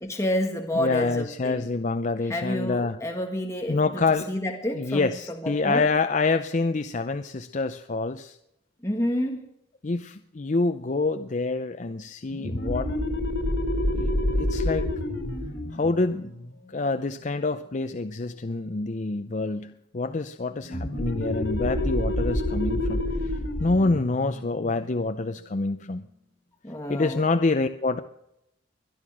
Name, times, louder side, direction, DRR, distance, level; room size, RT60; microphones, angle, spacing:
voice 1, 0.0-1.7 2.2-5.9 8.8-9.4 26.6-27.2, left 1 dB, 15° left, 2 dB, 1.7 m, -29 dB
voice 2, 0.7-3.0 3.7-4.3 4.7-8.4 9.8-12.9 13.9-14.1 14.4-14.9 15.7-16.3 16.7-23.1 23.6-26.0 26.9-28.0, left 3 dB, 40° left, 8 dB, 0.6 m, -26 dB
sound 1, 12.3-17.6 20.6-25.9, left 1 dB, 75° left, 4.1 m, -29 dB
22.5 x 10.5 x 6.2 m, 0.82 s
head